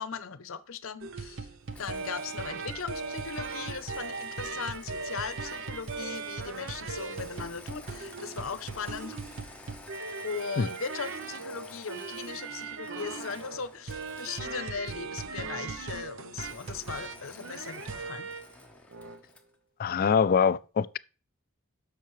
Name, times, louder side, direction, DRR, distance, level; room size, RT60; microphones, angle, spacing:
voice 1, 0.0-1.5 1.8-9.2 10.2-18.3, left 6 dB, 70° left, 0.7 m, -38 dB
sound 1, 1.0-18.5 18.9-19.2, right 4 dB, 60° right, 0.7 m, -38 dB
Engine starting, 1.7-15.1 16.3-19.5, left 3 dB, 5° left, 0.9 m, -51 dB
voice 2, 19.8-21.0, left 6 dB, 45° left, 0.3 m, -24 dB
10.5 x 6.6 x 3.1 m
head